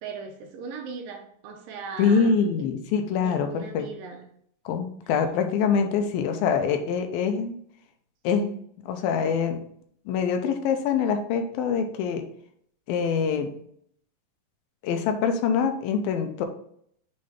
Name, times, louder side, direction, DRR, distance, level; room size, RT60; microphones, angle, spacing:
voice 1, 0.0-2.7 3.2-4.3, right 5 dB, 75° right, 3 dB, 2.5 m, -39 dB
voice 2, 2.0-3.9 4.7-7.6 8.2-8.5 8.9-9.6 10.1-12.2 12.9-13.5 14.8-16.5, left 6 dB, 85° left, 6 dB, 2.5 m, -24 dB
7.0 x 3.8 x 3.6 m, 0.67 s
omnidirectional pair, 4.2 m